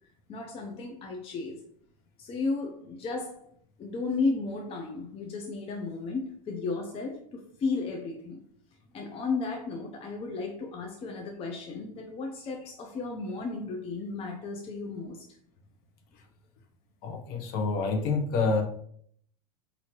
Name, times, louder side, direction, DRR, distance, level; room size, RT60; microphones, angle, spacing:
voice 1, 0.3-1.6 2.2-3.5 3.8-8.4 8.9-15.2, left 3 dB, 30° left, 0.6 m, -34 dB
voice 2, 17.0-18.6, left 3 dB, 50° left, 0.9 m, -27 dB
4.3 x 2.7 x 2.9 m
supercardioid pair, 110°, 20 cm